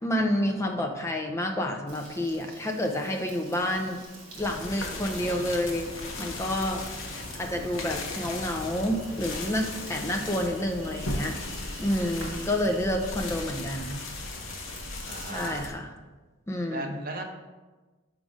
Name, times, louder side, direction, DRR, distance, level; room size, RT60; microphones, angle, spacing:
voice 1, 0.0-4.0 4.4-11.4 11.8-14.0 15.3-15.9 16.5-17.0, left 1 dB, 15° left, 3 dB, 0.4 m, -29 dB
Insect, 1.9-15.4, right 1 dB, 70° right, 1.9 m, -47 dB
sound 1, 4.3-15.7, left 2 dB, 70° left, 0.8 m, -37 dB
voice 2, 11.8-12.5 15.1-15.7 16.7-17.2, right 2 dB, 40° right, 2 dB, 0.6 m, -38 dB
4.8 x 3.9 x 4.9 m, 1.2 s
head